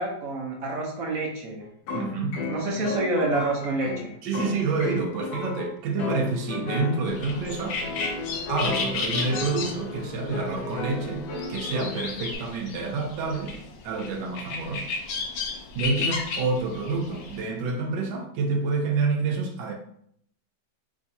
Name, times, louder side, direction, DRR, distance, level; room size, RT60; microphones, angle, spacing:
voice 1, 0.0-1.6 2.5-4.1, right 2 dB, 60° right, 0 dB, 1.1 m, -28 dB
sound 1, 1.6-12.3, left 2 dB, 70° left, 1.2 m, -34 dB
voice 2, 1.9-2.4 4.2-7.8 8.5-13.6 13.8-14.9 15.7-19.7, right 3 dB, 85° right, 1 dB, 1.3 m, -28 dB
sound 2, 7.1-17.4, left 4 dB, 85° left, 1.3 m, -34 dB
3.4 x 3.1 x 2.7 m, 0.67 s
omnidirectional pair, 1.9 m